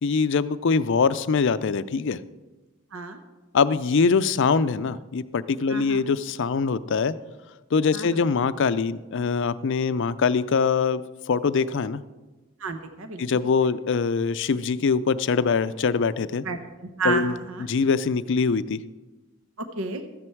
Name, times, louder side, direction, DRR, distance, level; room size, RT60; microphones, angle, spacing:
voice 1, 0.0-2.2 3.5-7.2 7.7-11.0 11.3-12.0 13.2-16.4 17.0-17.3 17.7-18.8, left 5 dB, 60° left, 15 dB, 0.4 m, -23 dB
voice 2, 5.7-6.0 7.9-8.2 12.6-13.4 16.4-16.6 17.0-17.7 19.6-20.0, right 3 dB, 70° right, 8 dB, 0.9 m, -31 dB
13.5 x 9.7 x 4.5 m, 1.2 s
head